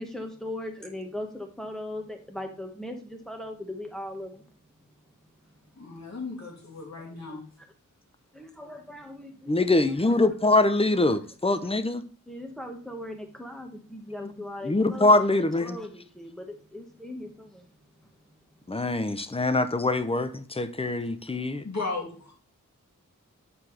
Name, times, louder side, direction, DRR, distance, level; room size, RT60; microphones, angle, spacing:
voice 1, 0.0-4.5 7.0-7.4 8.3-9.5 9.8-10.1 11.5-11.6 12.3-17.7 18.0-18.1, left 1 dB, ahead, 1.4 m, -39 dB
voice 2, 5.8-7.4 21.6-22.3, left 3 dB, 55° left, 2.6 m, -35 dB
voice 3, 9.5-12.0 14.6-15.8 18.7-21.6, left 2 dB, 20° left, 0.6 m, -23 dB
7.6 x 4.6 x 3.3 m
wide cardioid pair, 55°, 33 cm